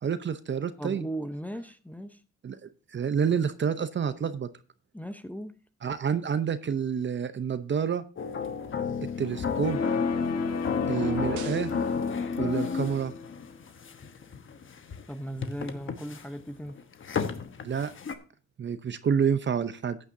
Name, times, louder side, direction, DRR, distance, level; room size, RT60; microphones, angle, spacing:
voice 1, 0.0-1.0 2.4-4.5 5.8-8.0 9.2-9.8 10.9-11.7 12.4-13.1 17.6-17.9 18.6-20.0, right 7 dB, 40° right, 0.7 m, -28 dB
voice 2, 0.8-2.2 4.9-5.6 8.5-8.6 15.1-16.8, right 1 dB, 5° left, 0.8 m, -37 dB
sound 1, 8.2-18.1, left 6 dB, 40° left, 1.1 m, -32 dB
sound 2, 9.6-13.6, left 4 dB, 55° left, 1.6 m, -34 dB
sound 3, 10.8-11.8, right 12 dB, 80° right, 0.6 m, -40 dB
14.5 x 8.9 x 2.7 m
cardioid pair, 90°, 30 cm